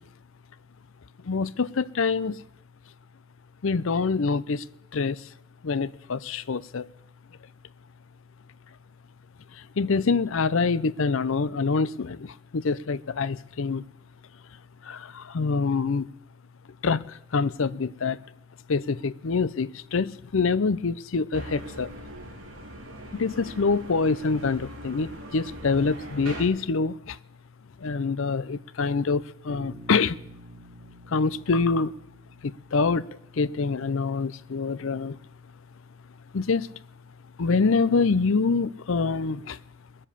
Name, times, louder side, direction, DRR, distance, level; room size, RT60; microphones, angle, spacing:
voice 1, 1.3-2.4 3.6-4.6 4.9-5.2 5.6-6.9 9.8-13.8 14.9-16.1 16.8-17.0 17.3-18.2 18.7-21.9 23.1-27.2 27.8-30.2 31.1-31.9 32.4-33.1 33.4-35.2 36.3-36.7 37.4-39.6, left 4 dB, 65° left, 0.5 m, -25 dB
sound 1, 21.3-26.4, right 1 dB, 70° right, 3.0 m, -41 dB
Bass guitar, 29.5-33.5, right 1 dB, 20° right, 3.0 m, -49 dB
21.5 x 7.6 x 6.8 m
head